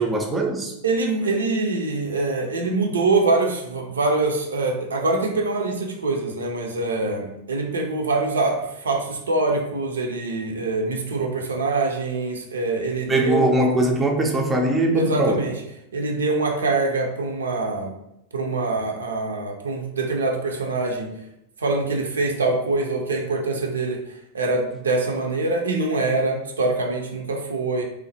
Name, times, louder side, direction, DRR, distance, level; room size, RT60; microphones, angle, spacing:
voice 1, 0.0-0.7 13.1-15.4, right 1 dB, 15° right, 2 dB, 0.4 m, -21 dB
voice 2, 0.8-13.5 14.9-15.5 15.9-17.9 18.3-21.1 21.6-24.0 24.3-27.8, right 3 dB, 70° right, 2 dB, 0.5 m, -24 dB
3.0 x 2.0 x 2.8 m, 0.83 s
figure-of-eight pair, 90°, 0 cm